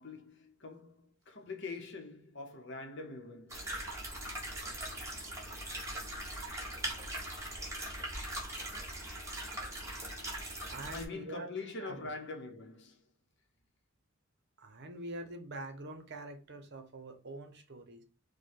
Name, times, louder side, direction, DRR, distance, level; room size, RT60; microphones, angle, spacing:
voice 1, 0.0-3.7 10.9-13.0, left 3 dB, 55° left, 0.9 m, -44 dB
sound 1, 3.5-11.0, right 1 dB, 15° right, 1.2 m, -40 dB
voice 2, 10.7-11.5 11.8-12.1 14.6-18.0, right 2 dB, 50° right, 0.8 m, -45 dB
4.8 x 2.2 x 4.5 m
head